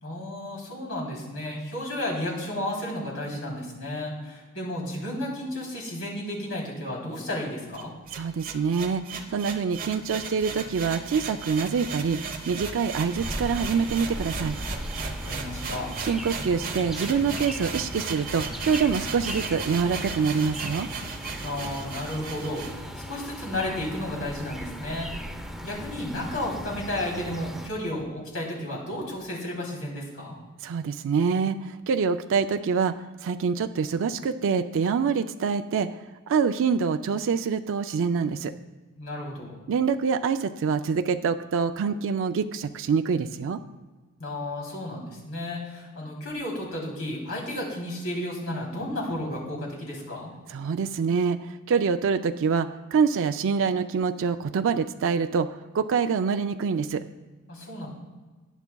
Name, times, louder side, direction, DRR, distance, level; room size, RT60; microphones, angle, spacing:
voice 1, 0.0-7.9 15.0-15.9 21.4-30.4 39.0-39.6 44.2-50.3 57.5-57.9, left 1 dB, 65° left, -3 dB, 3.2 m, -33 dB
sound 1, 7.7-22.7, right 4 dB, 40° right, 0.9 m, -36 dB
voice 2, 8.1-12.2 12.5-14.6 16.0-20.9 30.6-33.0 33.2-35.9 36.3-38.5 39.7-43.6 50.5-57.0, right 5 dB, 60° right, 8 dB, 0.4 m, -25 dB
sound 2, 13.1-27.7, equal, ahead, 0.5 m, -38 dB
19.0 x 7.0 x 2.3 m, 1.3 s
head